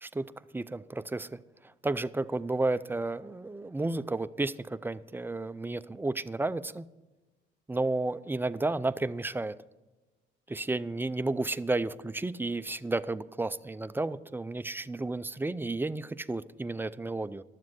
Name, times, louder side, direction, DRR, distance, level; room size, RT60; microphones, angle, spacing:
voice 1, 0.0-1.4 1.8-6.9 7.7-9.6 10.5-17.4, right 2 dB, 10° right, 15 dB, 0.4 m, -32 dB
12.5 x 7.5 x 6.1 m, 1.1 s
cardioid pair, 90°, 20 cm